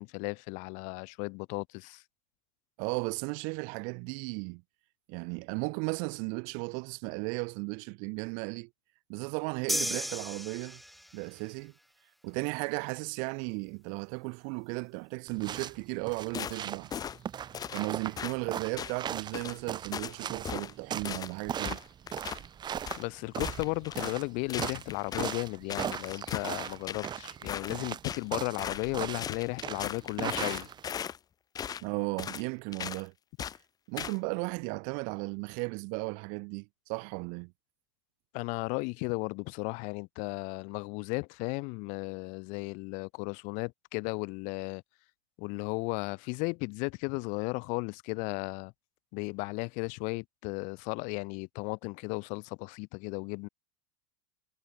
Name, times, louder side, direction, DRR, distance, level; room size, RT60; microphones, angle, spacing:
voice 1, 0.0-2.0 23.0-30.7 38.3-44.8 45.4-48.7 49.1-53.5, left 30 dB, 55° left, 4.2 m, -35 dB
voice 2, 2.8-4.6 5.1-8.7 9.1-10.8 11.1-11.7 12.2-16.9 17.7-21.8 31.8-33.1 33.9-37.5, right 39 dB, 55° right, 4.4 m, -35 dB
sound 1, 9.7-11.2, equal, ahead, 7.9 m, -34 dB
sound 2, 15.3-31.0, right 9 dB, 25° right, 6.3 m, -39 dB
sound 3, 16.3-16.6 16.9-17.2 17.5-17.9 18.2-18.4 18.8-19.0 19.3-19.6 19.9-20.2 20.4-20.7 21.0-21.3 21.6-22.4 22.9-23.0 23.4-24.2 24.5-25.4 25.7-27.1 27.5-28.2 28.6-28.9 29.2-31.2 31.6-31.8 32.2-32.5 32.7-33.0 33.4-33.6 34.0-34.2, left 8 dB, 25° left, 1.7 m, -38 dB
supercardioid pair, 130°, 16 cm